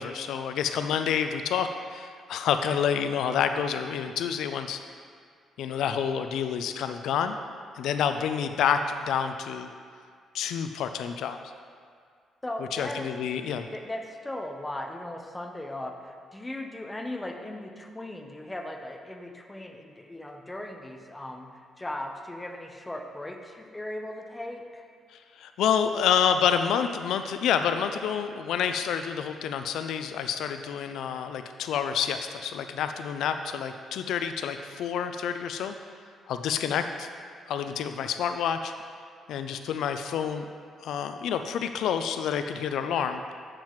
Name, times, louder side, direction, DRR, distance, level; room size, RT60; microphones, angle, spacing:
voice 1, 0.0-4.8 5.6-7.4 7.7-9.7 10.3-11.4 12.7-13.7 25.1-35.8 36.3-37.1 37.5-38.7 39.3-40.4 40.8-43.2, left 8 dB, 80° left, 8 dB, 0.3 m, -28 dB
voice 2, 12.4-13.1 13.4-21.5 21.8-24.9, left 1 dB, 15° left, 3 dB, 0.8 m, -38 dB
8.8 x 7.3 x 3.1 m, 2.1 s
cardioid pair, 90°, 0 cm